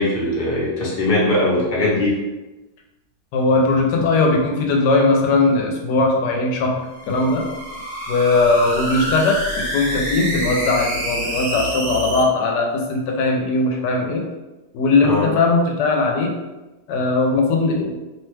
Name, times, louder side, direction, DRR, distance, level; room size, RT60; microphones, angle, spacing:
voice 1, 0.0-2.2 15.1-15.2, left 1 dB, 40° left, -6 dB, 0.9 m, -20 dB
voice 2, 3.3-6.8 7.1-7.5 8.1-14.3 14.7-16.4 16.9-18.0, left 3 dB, 90° left, 0 dB, 1.2 m, -19 dB
sound 1, 6.8-12.2, right 1 dB, 65° right, 1.1 m, -27 dB
2.9 x 2.2 x 3.1 m, 1.1 s
omnidirectional pair, 1.8 m